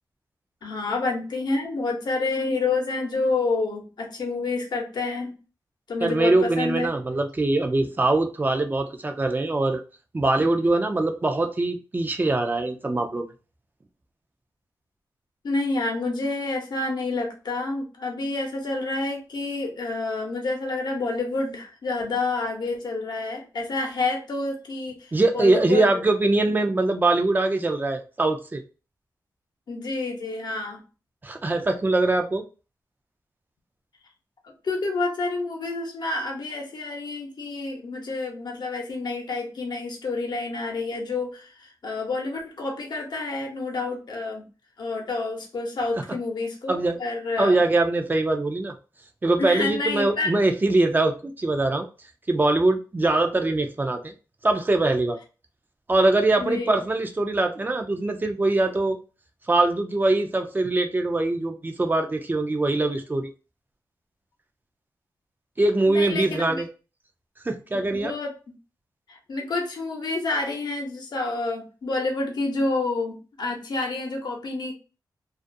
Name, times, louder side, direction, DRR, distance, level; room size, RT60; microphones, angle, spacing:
voice 1, 0.6-5.3 5.9-6.9 15.4-25.9 29.7-30.8 34.4-44.4 44.8-47.5 49.4-50.4 56.4-56.8 65.9-66.6 67.7-68.3 69.1-74.7, left 3 dB, 70° left, 1 dB, 0.7 m, -28 dB
voice 2, 6.0-9.8 10.1-13.3 25.1-28.6 31.2-32.4 46.7-47.0 47.4-48.7 49.2-51.9 52.3-54.1 54.4-55.2 55.9-59.0 59.5-63.3 65.6-66.7 67.4-68.1, right 2 dB, 25° right, 4 dB, 0.4 m, -22 dB
2.4 x 2.2 x 2.6 m, 0.33 s
wide cardioid pair, 95°, 8 cm